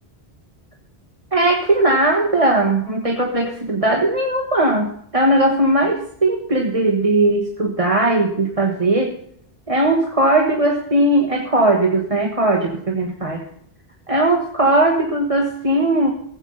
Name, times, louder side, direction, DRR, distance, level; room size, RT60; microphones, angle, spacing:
voice 1, 1.3-9.1 9.7-13.4 14.1-16.1, right 2 dB, 35° right, 0 dB, 1.6 m, -18 dB
16.5 x 8.2 x 5.5 m, 0.66 s
omnidirectional pair, 1.1 m